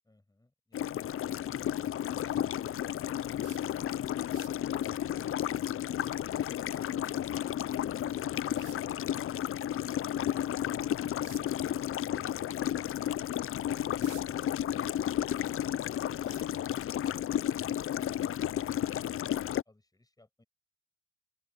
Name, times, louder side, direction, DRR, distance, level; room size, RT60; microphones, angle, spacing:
sound 1, 0.7-19.6, left 11 dB, 45° left, 0.5 m, -32 dB
sound 2, 3.4-3.8 4.2-4.7 7.4-7.5 8.6-9.0 11.2-11.5 12.1-12.3 12.8-12.9 13.6-14.5 14.9-15.6 16.3-17.0 17.9-18.1 18.4-18.5, right 14 dB, 90° right, 1.4 m, -52 dB
voice 1, 17.3-20.4, left 2 dB, 10° left, 6.4 m, -62 dB
open air
cardioid pair, 90°, 30 cm